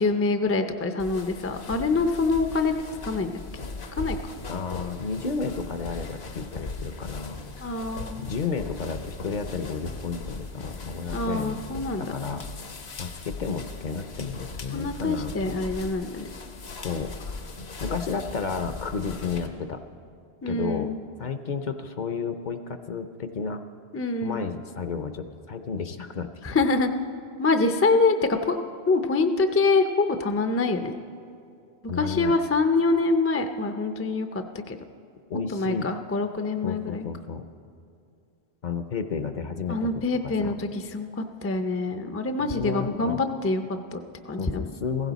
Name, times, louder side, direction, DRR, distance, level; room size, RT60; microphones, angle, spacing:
voice 1, 0.0-2.7 3.0-3.3 4.0-4.2 7.6-8.2 11.1-12.0 14.7-16.3 20.4-20.9 23.9-24.4 26.4-26.9 27.4-28.6 28.9-31.0 32.0-34.8 35.5-37.0 39.7-44.7, left 3 dB, 20° left, 7 dB, 0.3 m, -25 dB
sound 1, 1.0-19.5, left 3 dB, 75° left, 1.2 m, -39 dB
voice 2, 4.5-7.4 8.2-11.6 12.0-12.4 13.0-15.6 16.8-17.1 17.8-19.8 20.5-20.9 21.2-23.6 24.2-26.3 31.9-32.3 35.3-35.9 36.6-37.4 38.6-39.9 40.2-40.6 42.4-43.2 44.4-45.1, left 5 dB, 50° left, 9 dB, 0.7 m, -32 dB
16.0 x 15.5 x 4.0 m, 2.5 s
omnidirectional pair, 1.1 m